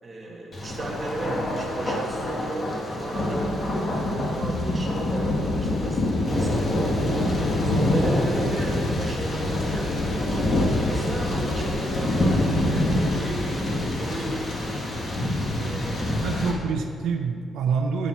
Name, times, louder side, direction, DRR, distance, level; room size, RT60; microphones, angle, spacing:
voice 1, 0.0-3.5 3.8-7.0 7.6-10.0 10.8-13.7 13.9-14.5 15.5-16.3, right 2 dB, 20° right, -3 dB, 1.9 m, -35 dB
Thunder, 0.5-16.5, left 1 dB, 30° left, 1.5 m, -25 dB
voice 2, 16.1-18.1, right 5 dB, 80° right, 4 dB, 0.6 m, -27 dB
10.0 x 8.6 x 4.4 m, 2.4 s
cardioid pair, 160°, 0 cm